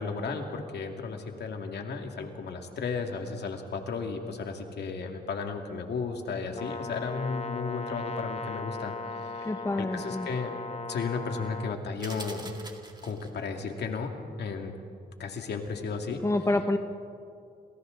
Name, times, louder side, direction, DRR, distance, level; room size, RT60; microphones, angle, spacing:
voice 1, 0.0-8.9 9.2-9.5 9.8-10.5 10.9-12.5 13.0-14.1 14.4-14.7 15.2-16.2, left 5 dB, 75° left, 3 dB, 2.3 m, -34 dB
Brass instrument, 6.5-11.8, left 3 dB, 40° left, 1.2 m, -37 dB
voice 2, 9.4-10.3 16.2-16.8, left 2 dB, 15° left, 7 dB, 1.1 m, -27 dB
sound 1, 12.0-13.5, right 2 dB, 25° right, 2.5 m, -44 dB
29.0 x 27.0 x 3.9 m, 2.5 s
cardioid pair, 100°, 17 cm